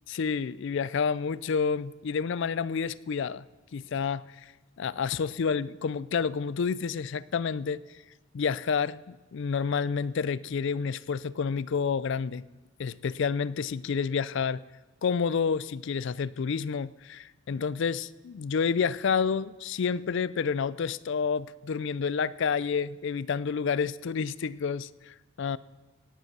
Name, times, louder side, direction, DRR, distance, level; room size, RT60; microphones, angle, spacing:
voice 1, 0.1-3.5 3.7-4.5 4.8-7.8 8.3-12.4 12.8-14.6 15.0-25.6, left 6 dB, 55° left, 19 dB, 0.4 m, -29 dB
17.5 x 7.8 x 6.1 m, 1.2 s
head